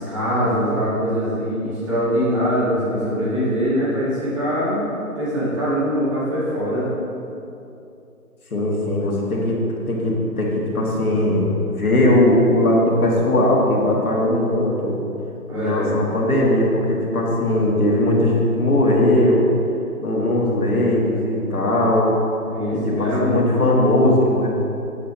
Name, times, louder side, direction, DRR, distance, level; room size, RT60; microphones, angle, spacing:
voice 1, 0.0-4.8 5.2-6.9 15.5-16.0 22.5-23.4, equal, 20° right, -10 dB, 2.2 m, -22 dB
voice 2, 8.5-9.6 9.9-15.0 15.5-19.4 20.0-22.1 22.7-24.5, left 1 dB, 70° left, -2 dB, 2.1 m, -19 dB
13.0 x 8.3 x 2.9 m, 2.7 s
hypercardioid pair, 170°, 45 cm